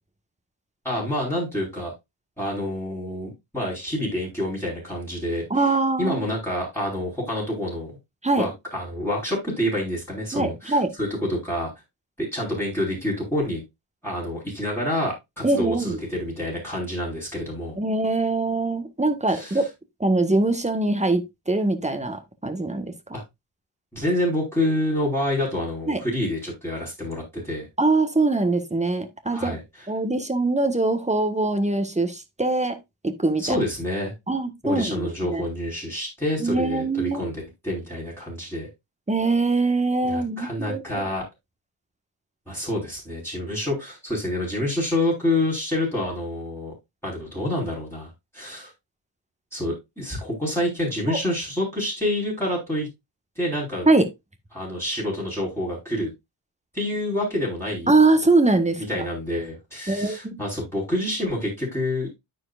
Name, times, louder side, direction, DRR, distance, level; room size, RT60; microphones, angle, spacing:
voice 1, 0.8-1.9 2.4-5.4 6.0-8.0 8.4-11.7 12.2-13.6 14.0-17.8 19.3-19.6 23.1-23.2 23.9-27.7 29.3-29.6 33.4-34.1 34.6-38.7 40.0-41.2 42.5-46.7 47.0-48.7 49.5-52.9 53.4-53.9 54.5-56.1 56.7-57.9 58.9-62.1, left 1 dB, 5° left, 5.0 m, -27 dB
voice 2, 5.5-6.2 8.2-8.5 10.3-10.9 15.4-16.0 17.8-19.7 20.0-22.9 25.9-26.0 27.8-29.6 29.9-32.8 33.0-33.6 34.3-35.4 36.4-37.2 39.1-41.1 51.1-51.2 53.8-54.1 57.9-59.1 59.9-60.4, right 2 dB, 15° right, 1.5 m, -23 dB
13.0 x 4.8 x 2.5 m
cardioid pair, 70°, 47 cm